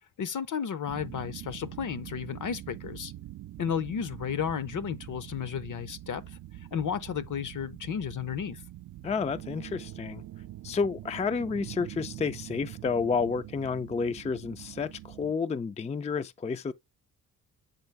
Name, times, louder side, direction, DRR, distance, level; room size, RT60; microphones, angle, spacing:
voice 1, 0.2-3.1 3.6-6.2 6.7-8.6, left 7 dB, 60° left, 0.8 m, -33 dB
sound 1, 0.9-15.3, right 14 dB, 55° right, 0.4 m, -44 dB
voice 2, 9.0-10.2 10.6-16.7, left 5 dB, 20° left, 0.4 m, -30 dB
7.9 x 3.9 x 3.4 m
cardioid pair, 70°, 36 cm